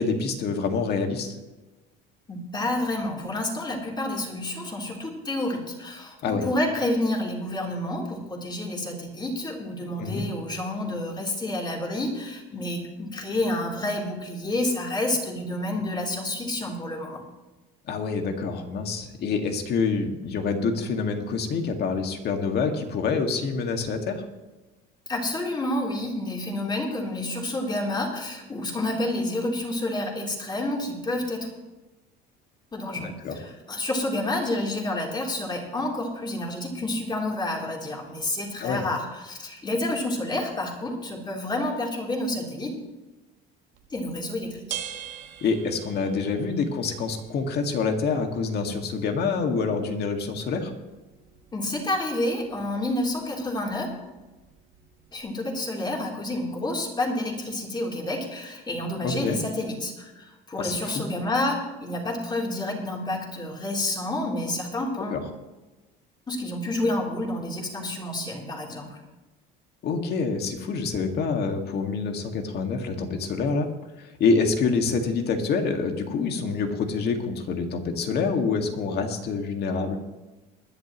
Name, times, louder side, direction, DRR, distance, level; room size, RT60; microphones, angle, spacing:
voice 1, 0.0-1.4 6.2-6.5 10.0-10.3 17.9-24.2 33.0-33.4 38.6-38.8 45.4-50.7 59.0-59.4 60.6-61.0 65.1-65.2 69.8-73.7 74.0-80.0, left 4 dB, 50° left, 5 dB, 2.0 m, -26 dB
voice 2, 2.3-17.2 25.1-31.5 32.7-42.7 43.9-44.8 51.5-53.9 55.1-65.2 66.3-69.0, left 1 dB, 20° left, -1 dB, 3.5 m, -29 dB
sound 1, 43.7-55.2, right 10 dB, 60° right, 1.7 m, -45 dB
21.0 x 11.0 x 3.1 m, 1.1 s
cardioid pair, 120°, 21 cm